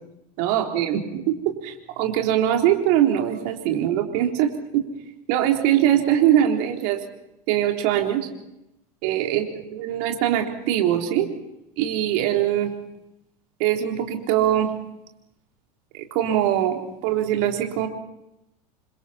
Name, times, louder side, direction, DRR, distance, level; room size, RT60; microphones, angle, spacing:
voice 1, 0.4-1.0 1.4-4.9 5.3-7.0 7.5-8.3 9.0-9.4 9.7-11.3 11.8-12.7 13.6-14.7 15.9-17.9, right 11 dB, 60° right, 3 dB, 3.9 m, -22 dB
29.0 x 25.5 x 4.4 m, 0.86 s
hypercardioid pair, 85°, 19 cm